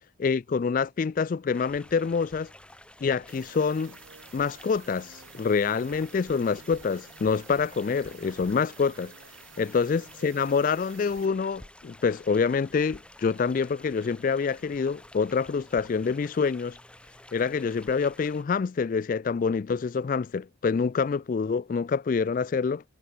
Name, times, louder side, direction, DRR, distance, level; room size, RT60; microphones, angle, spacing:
voice 1, 0.2-2.5 3.0-4.0 4.3-9.1 9.6-16.8 17.3-22.8, left 5 dB, 40° left, 0.3 m, -26 dB
sound 1, 1.5-18.4, left 1 dB, 5° left, 1.3 m, -51 dB
sound 2, 3.3-11.3, right 6 dB, 85° right, 6.3 m, -51 dB
head